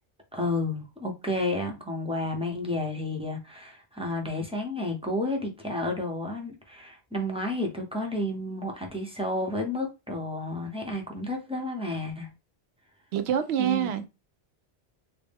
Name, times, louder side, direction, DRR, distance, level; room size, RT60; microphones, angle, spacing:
voice 1, 0.3-12.3 13.6-13.9, left 1 dB, 5° right, 0.7 m, -31 dB
voice 2, 13.1-14.1, right 9 dB, 80° right, 0.8 m, -26 dB
4.2 x 2.1 x 3.5 m
omnidirectional pair, 1.1 m